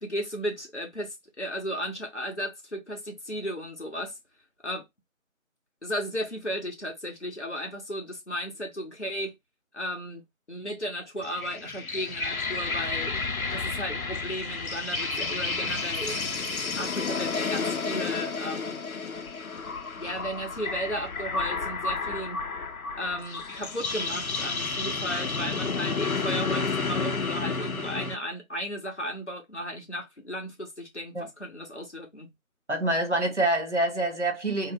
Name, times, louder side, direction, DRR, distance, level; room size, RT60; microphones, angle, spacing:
voice 1, 0.0-4.2 4.6-4.9 5.8-9.4 9.7-13.2 13.5-16.4 16.8-18.8 20.0-22.4 23.0-32.3, equal, 55° left, 1.0 m, -35 dB
sound 1, 11.2-28.2, left 4 dB, 80° left, 0.7 m, -31 dB
voice 2, 32.7-34.7, right 1 dB, 55° right, 0.8 m, -26 dB
2.7 x 2.1 x 3.2 m
figure-of-eight pair, 180°, 42 cm